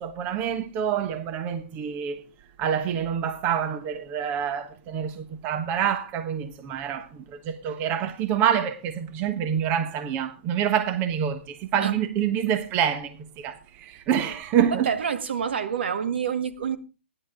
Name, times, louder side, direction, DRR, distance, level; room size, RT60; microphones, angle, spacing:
voice 1, 0.0-2.2 2.6-14.9, right 9 dB, 30° right, 1.2 m, -27 dB
voice 2, 14.7-16.8, right 7 dB, 65° right, 1.8 m, -27 dB
16.5 x 11.0 x 3.7 m
hypercardioid pair, 130°, 6 cm